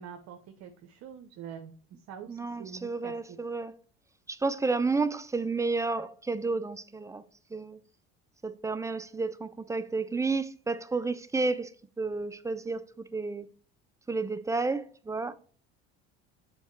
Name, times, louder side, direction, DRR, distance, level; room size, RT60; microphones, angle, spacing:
voice 1, 0.0-3.4, right 7 dB, 60° right, 0.8 m, -45 dB
voice 2, 2.3-3.7 4.3-7.2 7.5-7.8 8.4-13.5 14.1-15.3, right 3 dB, 10° right, 0.4 m, -31 dB
7.1 x 3.9 x 4.4 m
hypercardioid pair, 75°, 31 cm